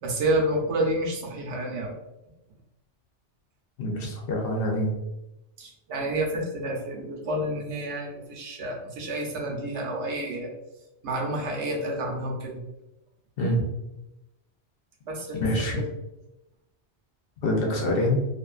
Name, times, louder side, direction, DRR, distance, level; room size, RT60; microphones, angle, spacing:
voice 1, 0.0-2.0 5.6-10.5 11.0-12.6 15.1-15.9, right 1 dB, 75° right, 0 dB, 0.9 m, -29 dB
voice 2, 3.8-4.9 13.4-13.7 15.4-15.8 17.4-18.2, left 1 dB, 60° left, -1 dB, 0.7 m, -25 dB
2.4 x 2.4 x 2.3 m, 0.94 s
omnidirectional pair, 1.2 m